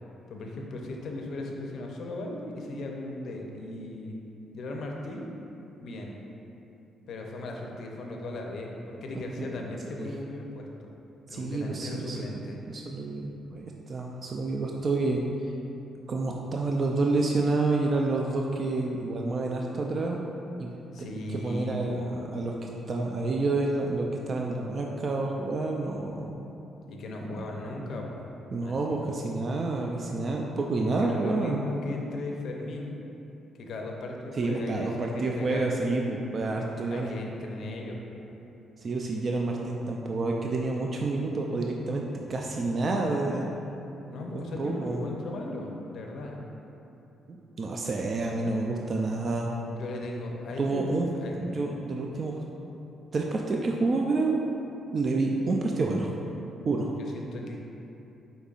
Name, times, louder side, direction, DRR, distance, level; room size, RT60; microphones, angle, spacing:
voice 1, 0.3-4.2 4.5-5.3 5.8-6.2 7.1-10.9 11.3-12.6 20.9-22.1 26.9-28.3 28.6-29.1 31.0-33.0 33.6-35.9 36.9-38.3 42.1-42.5 44.1-46.4 49.8-51.4 55.1-55.4 57.0-57.6, left 2 dB, 65° left, 0 dB, 0.5 m, -37 dB
voice 2, 11.3-15.5 16.1-20.2 20.6-20.7 21.0-26.3 27.3-27.5 28.5-31.6 34.3-37.1 38.8-42.0 42.3-43.5 44.6-45.0 47.3-49.5 50.6-52.4 53.1-54.4 54.9-56.1 56.6-57.0, right 3 dB, 45° right, 0 dB, 0.3 m, -29 dB
5.2 x 4.0 x 2.4 m, 2.9 s
cardioid pair, 90°, 0 cm